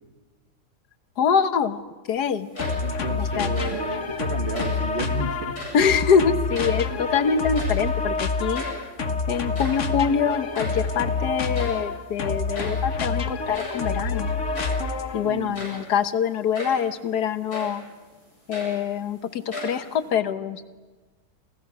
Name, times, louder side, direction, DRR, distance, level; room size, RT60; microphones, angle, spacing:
voice 1, 1.2-1.8 2.1-2.5 3.2-3.5 5.7-8.6 9.3-14.3 15.1-17.8 18.5-20.7, left 7 dB, 90° left, 11 dB, 1.6 m, -24 dB
sound 1, 2.4-3.0 3.4-3.9 4.5-4.9 5.4-5.9 6.3-7.1 7.4-8.0 8.3-8.4 8.5-8.9 9.4-10.9 11.5-11.9 12.5-12.9 13.5-13.9 14.5-14.9 15.4-15.9 16.5-16.9 17.5-17.8 18.3-19.1 19.5-20.1, equal, 75° left, 8.8 m, -36 dB
sound 2, 2.6-15.4, left 4 dB, 50° left, 1.6 m, -27 dB
voice 2, 2.8-5.6 15.2-15.6, right 3 dB, 45° right, 7 dB, 1.7 m, -32 dB
29.0 x 28.0 x 6.1 m, 1.3 s
omnidirectional pair, 1.7 m